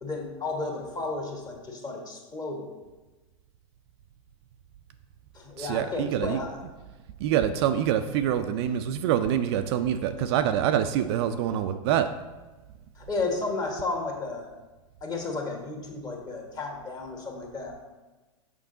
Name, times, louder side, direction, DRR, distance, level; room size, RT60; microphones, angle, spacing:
voice 1, 0.0-2.7 5.3-6.6 13.0-14.5 15.0-17.8, left 3 dB, 20° left, 1 dB, 1.4 m, -33 dB
voice 2, 5.6-6.4 7.2-12.1, right 10 dB, 50° right, 9 dB, 0.4 m, -25 dB
6.1 x 5.2 x 3.8 m, 1.2 s
hypercardioid pair, 110°, 17 cm